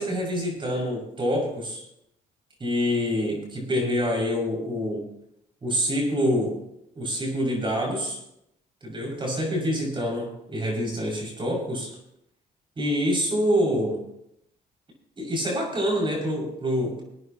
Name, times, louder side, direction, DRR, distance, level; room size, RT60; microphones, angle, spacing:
voice 1, 0.0-1.8 2.6-5.0 5.6-6.6 6.9-8.2 8.8-11.9 12.8-14.0 15.2-17.0, equal, 30° right, -1 dB, 6.0 m, -26 dB
24.0 x 9.3 x 2.9 m, 0.79 s
cardioid pair, 95°, 17 cm